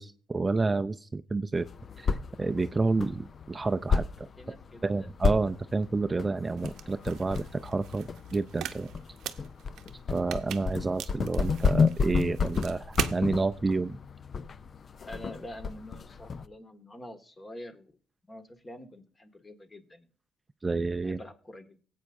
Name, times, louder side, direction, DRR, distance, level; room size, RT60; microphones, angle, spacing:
voice 1, 0.0-1.7 2.0-2.1 2.4-4.3 4.8-8.9 10.1-14.0 20.6-21.2, right 3 dB, 25° right, 9 dB, 0.5 m, -29 dB
sound 1, 1.5-16.5, left 5 dB, 45° left, 0.5 m, -32 dB
voice 2, 4.4-5.1 15.1-17.9 18.3-20.1 21.0-21.8, left 1 dB, 25° left, 7 dB, 1.9 m, -46 dB
sound 2, 6.6-13.2, right 10 dB, 80° right, 0.7 m, -39 dB
19.0 x 8.4 x 2.6 m, 0.42 s
cardioid pair, 90°, 0 cm